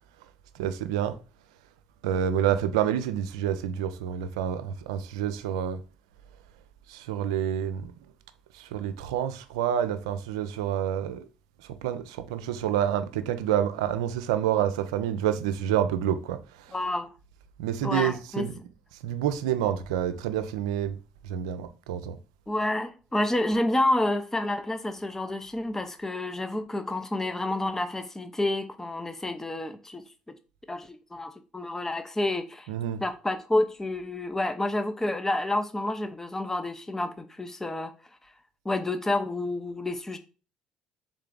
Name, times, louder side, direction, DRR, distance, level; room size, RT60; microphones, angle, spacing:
voice 1, 0.6-1.2 2.0-5.8 6.9-7.9 8.6-11.3 11.8-16.4 17.6-18.5 19.0-21.0 21.2-22.2 32.7-33.0, right 10 dB, 80° right, 0.4 m, -28 dB
voice 2, 16.7-17.1 17.8-18.5 22.5-30.3 30.7-32.7 33.0-37.9 38.6-40.2, left 1 dB, 15° left, 0.6 m, -29 dB
3.7 x 3.3 x 3.8 m
hypercardioid pair, 55°, 3 cm